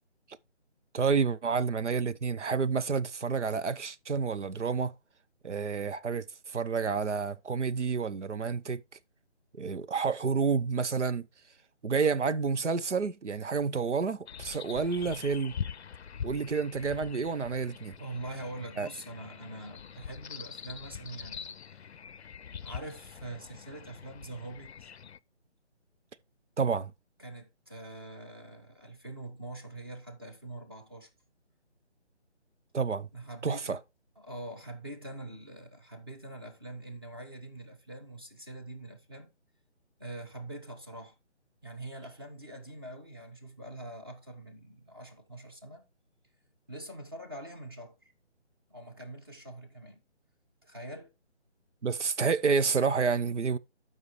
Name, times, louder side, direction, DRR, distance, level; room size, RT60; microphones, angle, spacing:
voice 1, 0.9-4.9 5.4-8.8 9.6-11.3 11.8-15.5 16.2-17.9 18.8-18.9 26.6-26.9 32.7-33.1 33.4-33.8 51.8-53.6, right 5 dB, 85° right, 0.8 m, -29 dB
sound 1, 14.3-25.2, left 7 dB, 65° left, 0.5 m, -43 dB
voice 2, 18.0-21.8 22.6-24.9 27.2-31.1 33.1-33.8 34.2-39.3 40.0-41.1 41.6-45.9 46.7-48.0 48.7-50.0 50.6-51.1, right 1 dB, 20° right, 1.1 m, -44 dB
12.5 x 5.6 x 3.1 m
figure-of-eight pair, 170°, 35 cm